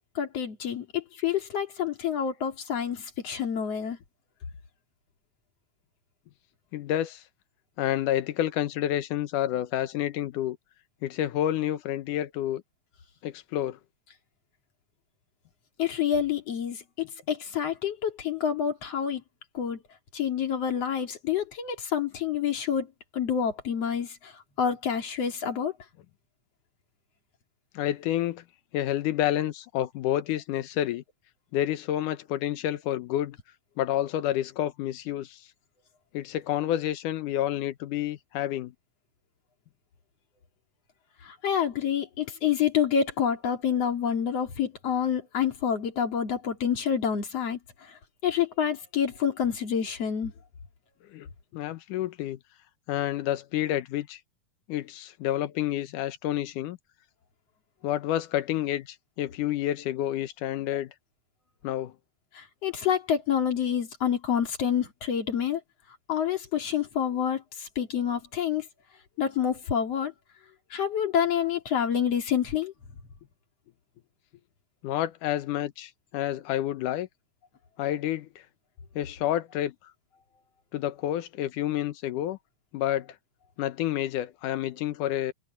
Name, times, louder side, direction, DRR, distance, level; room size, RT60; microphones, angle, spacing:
voice 1, 0.1-4.0 15.8-19.2 19.5-19.8 20.1-22.9 23.1-24.3 24.6-25.7 41.2-47.9 48.2-50.3 62.3-65.6 66.1-68.7 69.2-70.1 70.7-72.7, left 8 dB, 50° left, 3.4 m, -28 dB
voice 2, 6.7-7.2 7.8-10.6 11.0-12.6 13.2-13.8 27.7-28.4 28.7-31.0 31.5-33.4 33.8-35.4 36.1-38.7 51.1-51.3 51.5-52.4 52.9-54.2 54.7-56.8 57.8-60.9 61.6-61.9 74.8-77.1 77.8-78.4 79.0-79.8 80.7-82.4 82.7-83.1 83.6-85.3, left 12 dB, 75° left, 2.5 m, -29 dB
omnidirectional pair, 3.7 m